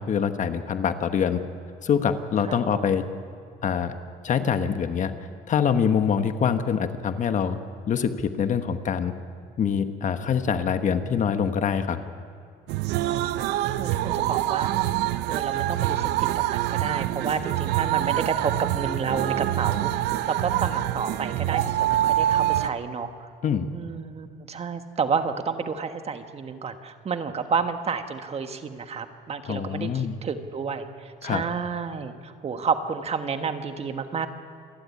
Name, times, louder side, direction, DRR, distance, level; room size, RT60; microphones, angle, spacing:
voice 1, 0.0-1.4 1.8-3.0 3.6-3.9 4.2-5.1 5.5-7.6 7.9-9.1 9.6-12.0 23.4-23.7 29.5-30.1 31.2-31.4, left 7 dB, 45° left, 9 dB, 1.3 m, -24 dB
voice 2, 2.4-2.8 13.0-14.7 15.3-23.3 23.7-34.3, right 5 dB, 35° right, 8 dB, 1.4 m, -30 dB
sound 1, 12.7-22.7, right 13 dB, 85° right, 0.6 m, -25 dB
27.0 x 11.5 x 9.8 m, 2.3 s
cardioid pair, 110°, 17 cm